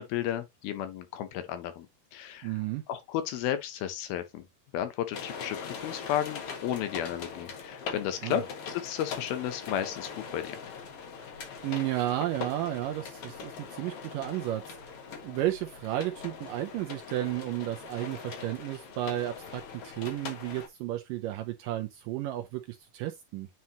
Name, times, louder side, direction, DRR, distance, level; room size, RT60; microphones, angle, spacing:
voice 1, 0.0-1.9 2.1-2.6 2.9-4.4 4.7-10.6, left 11 dB, 75° left, 2.6 m, -33 dB
voice 2, 2.4-2.8 8.2-8.4 11.6-14.8 15.2-23.5, right 14 dB, 85° right, 1.9 m, -33 dB
sound 1, 5.1-20.7, left 6 dB, 55° left, 1.7 m, -42 dB
9.5 x 4.3 x 2.9 m
omnidirectional pair, 4.6 m